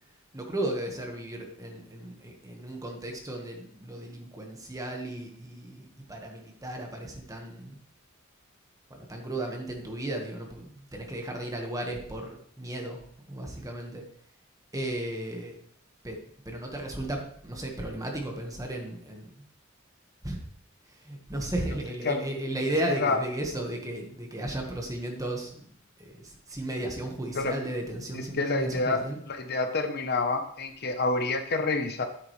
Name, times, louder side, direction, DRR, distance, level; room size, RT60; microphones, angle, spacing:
voice 1, 0.3-7.8 8.9-13.0 13.3-14.0 14.7-15.5 16.0-16.2 16.4-19.4 20.2-20.4 20.9-25.7 26.0-29.2, right 1 dB, 15° right, 1 dB, 1.5 m, -35 dB
voice 2, 28.1-29.0 29.3-32.1, left 3 dB, 50° left, 6 dB, 0.9 m, -28 dB
9.8 x 8.6 x 3.3 m, 0.65 s
head